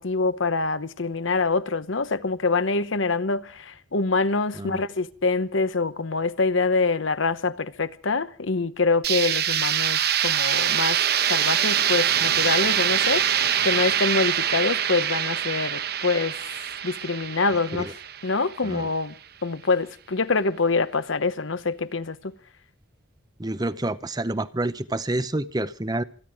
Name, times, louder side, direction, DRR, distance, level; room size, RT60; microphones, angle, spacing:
voice 1, 0.0-11.0 11.3-16.4 16.8-17.9 18.2-19.1 19.4-22.3, left 3 dB, 75° left, 1.0 m, -25 dB
sound 1, 9.0-18.8, right 9 dB, 50° right, 1.0 m, -24 dB
voice 2, 23.4-26.0, right 2 dB, 20° right, 0.7 m, -28 dB
27.0 x 10.5 x 4.9 m
head